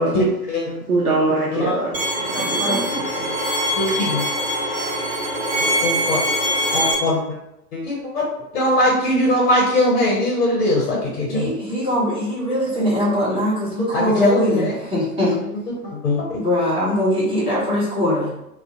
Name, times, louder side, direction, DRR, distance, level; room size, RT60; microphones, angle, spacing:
voice 1, 0.1-0.8 1.5-1.7 2.4-2.8 3.2-3.3 3.8-4.2 5.8-6.2 6.7-7.2 7.7-8.2 8.5-11.5 13.0-13.4 13.9-14.7 15.7-16.4, left 1 dB, 45° left, -3 dB, 0.7 m, -21 dB
voice 2, 0.9-3.0, right 2 dB, 70° right, -3 dB, 0.6 m, -23 dB
Bowed string instrument, 1.9-6.9, equal, 45° right, 0.9 m, -23 dB
voice 3, 11.3-15.4 16.3-18.4, equal, 10° right, -9 dB, 0.8 m, -21 dB
2.4 x 2.1 x 2.6 m, 0.84 s
figure-of-eight pair, 105°, 46 cm